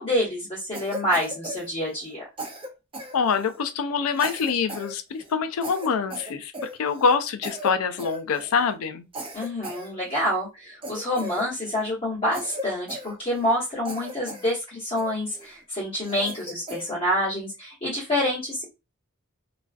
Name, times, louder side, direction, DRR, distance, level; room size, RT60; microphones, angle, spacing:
voice 1, 0.0-2.2 9.3-18.6, left 1 dB, 25° left, 1.0 m, -27 dB
Cough, 0.7-2.1 2.4-3.6 4.1-4.9 5.2-5.3 5.6-7.2 7.4-7.7 8.0-8.6 9.1-10.3 10.8-11.9 12.3-13.6 13.8-14.5 15.0-15.5 16.0-16.9, equal, 25° right, 0.5 m, -37 dB
voice 2, 3.1-9.1, left 5 dB, 75° left, 0.4 m, -25 dB
2.4 x 2.3 x 2.4 m
head